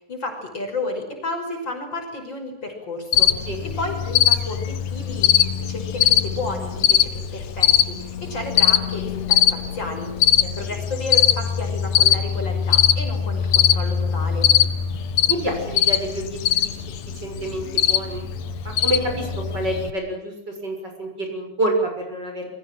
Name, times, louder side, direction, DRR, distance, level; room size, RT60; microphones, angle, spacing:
voice 1, 0.0-3.3 3.8-14.5, left 2 dB, 35° left, 3 dB, 6.6 m, -32 dB
Cricket, 3.1-19.9, left 10 dB, 65° left, 2.5 m, -21 dB
voice 2, 10.4-10.7 15.3-16.7 17.1-18.2 18.6-22.5, right 1 dB, 35° right, 3 dB, 7.1 m, -28 dB
29.5 x 23.5 x 7.7 m, 0.73 s
omnidirectional pair, 3.5 m